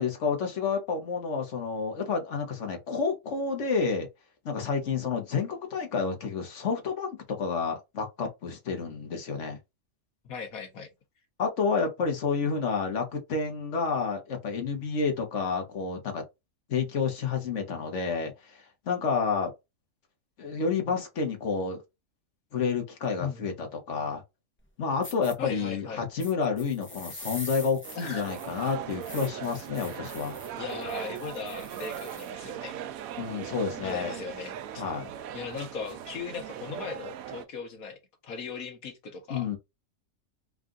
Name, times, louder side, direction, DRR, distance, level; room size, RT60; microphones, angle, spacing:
voice 1, 0.0-4.1 4.4-9.6 11.4-16.2 16.7-18.6 18.9-19.5 20.4-21.8 22.5-24.2 24.8-30.4 33.2-34.2 34.8-35.1 39.3-39.6, left 5 dB, 60° left, 1.4 m, -29 dB
voice 2, 10.2-10.9 23.2-23.7 25.4-26.1 28.0-28.2 29.9-30.1 30.5-32.8 33.8-34.8 35.3-39.5, left 5 dB, 85° left, 1.5 m, -38 dB
sound 1, 24.6-24.7 25.0-25.3 26.2-32.3, left 1 dB, 15° left, 0.5 m, -45 dB
sound 2, 27.8-37.5, right 10 dB, 85° right, 1.0 m, -39 dB
3.7 x 2.4 x 3.8 m
omnidirectional pair, 1.4 m